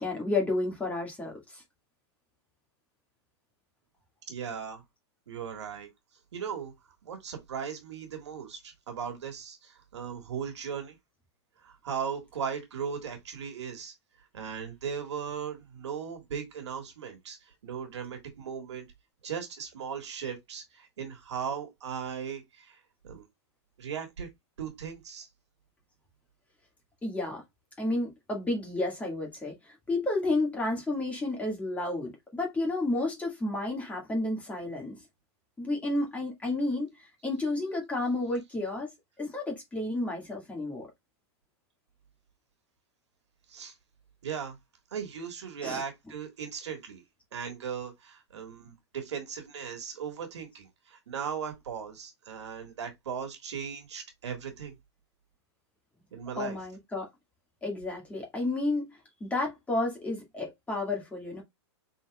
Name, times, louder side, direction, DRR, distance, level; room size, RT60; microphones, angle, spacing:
voice 1, 0.0-1.6 27.0-27.4 27.8-29.5 29.9-35.0 35.6-36.9 37.2-38.9 39.2-40.8 45.6-45.8 56.4-57.0 57.6-58.8 59.2-61.4, left 2 dB, 10° left, 1.9 m, -31 dB
voice 2, 4.3-4.8 5.3-5.9 6.3-6.7 7.0-11.0 11.6-13.9 14.3-17.4 17.6-18.9 19.2-22.8 23.0-23.2 23.8-24.3 24.6-25.3 43.5-43.7 44.2-44.6 44.9-47.0 47.3-54.7 56.1-56.6, right 7 dB, 80° right, 1.7 m, -37 dB
5.0 x 4.0 x 2.3 m
hypercardioid pair, 140°, 15 cm